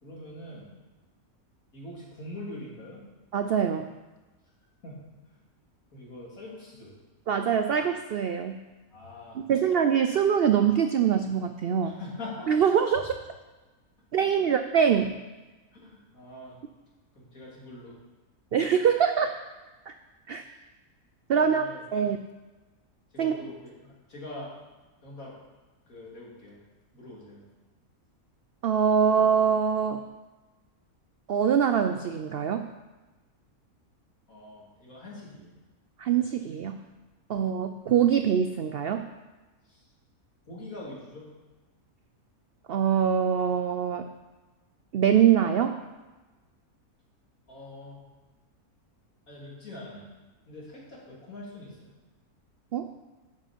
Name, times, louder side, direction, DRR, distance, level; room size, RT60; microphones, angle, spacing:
voice 1, 0.0-0.7 1.7-3.1 4.8-5.4 5.9-6.9 8.9-9.4 11.8-12.5 14.2-14.5 15.8-16.6 17.1-18.0 20.3-20.5 21.3-21.8 23.1-24.5 25.0-25.4 25.9-26.6 26.9-27.4 34.3-35.5 39.6-39.9 40.5-41.3 47.5-48.1 49.3-50.1 50.5-51.9, left 1 dB, 65° left, -5 dB, 3.3 m, -43 dB
voice 2, 3.3-3.9 7.3-8.6 9.5-12.0 12.5-13.1 14.1-15.1 18.5-19.3 19.9-20.0 20.3-20.4 21.3-21.7 21.9-22.2 23.2-23.3 28.6-30.0 31.3-32.7 36.0-36.8 37.3-39.1 42.7-44.1 44.9-45.8 52.7-52.9, right 8 dB, 75° right, 8 dB, 0.5 m, -24 dB
11.0 x 7.6 x 5.2 m, 1.2 s
omnidirectional pair, 1.6 m